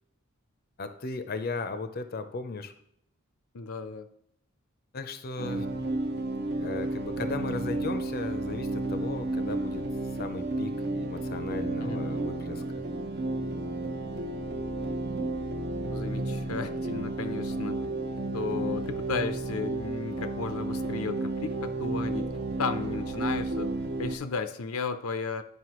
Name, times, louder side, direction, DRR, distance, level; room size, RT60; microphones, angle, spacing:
voice 1, 0.8-2.7 4.9-5.7 6.6-9.9 10.2-12.8, left 3 dB, 45° left, 9 dB, 0.5 m, -36 dB
voice 2, 3.5-4.1 11.8-12.0 15.9-17.8 18.3-22.3 22.6-23.7 24.0-25.4, left 5 dB, 90° left, 10 dB, 0.5 m, -34 dB
sound 1, 5.4-24.2, right 2 dB, 50° right, 0.6 m, -32 dB
9.5 x 5.4 x 3.0 m, 0.73 s
head